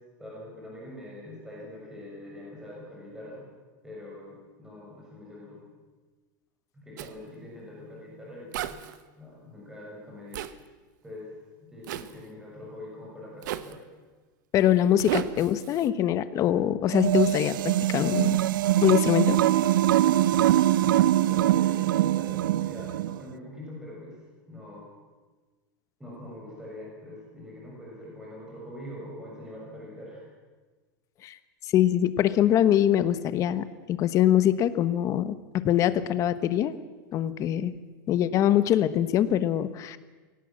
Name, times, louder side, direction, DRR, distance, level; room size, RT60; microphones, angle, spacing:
voice 1, 0.2-3.4 3.8-5.6 6.7-8.8 9.2-10.4 11.0-11.3 11.7-13.8 19.8-24.2 24.5-24.9 26.0-30.2, left 1 dB, 5° right, -5 dB, 6.7 m, -44 dB
Zipper (clothing), 7.0-7.1 8.5-9.0 10.3-10.5 11.8-12.1 13.4-13.8 15.0-15.9, right 12 dB, 70° right, 1.2 m, -33 dB
voice 2, 14.5-17.5 17.9-18.4 18.8-19.4 31.2-31.4 31.7-35.3 35.6-36.7 37.1-37.7 38.1-40.0, left 11 dB, 30° left, 13 dB, 1.1 m, -23 dB
sound 1, 16.9-23.2, right 14 dB, 85° right, 0.6 m, -23 dB
24.0 x 17.5 x 7.5 m, 1.3 s
supercardioid pair, 155°, 11 cm